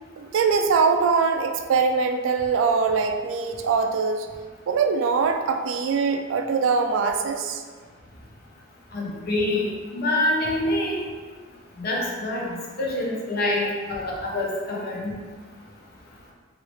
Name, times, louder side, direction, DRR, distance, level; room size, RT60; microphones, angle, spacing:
voice 1, 0.2-4.3 4.7-7.6, right 5 dB, 70° right, 5 dB, 0.3 m, -22 dB
voice 2, 8.9-9.7 9.9-11.0 11.8-12.5 12.8-13.6 13.9-15.1, left 1 dB, 50° left, -3 dB, 0.7 m, -25 dB
3.1 x 2.7 x 3.0 m, 1.5 s
head